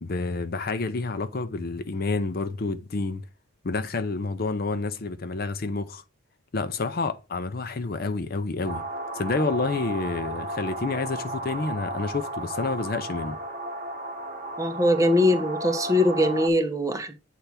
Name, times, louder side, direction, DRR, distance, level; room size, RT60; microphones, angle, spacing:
voice 1, 0.0-3.2 3.6-6.0 6.5-8.8 9.1-13.4, left 3 dB, 45° left, 0.5 m, -29 dB
sound 1, 8.7-16.5, right 1 dB, 40° right, 1.4 m, -34 dB
voice 2, 14.6-17.1, left 1 dB, 15° right, 1.0 m, -22 dB
8.3 x 3.4 x 5.8 m
head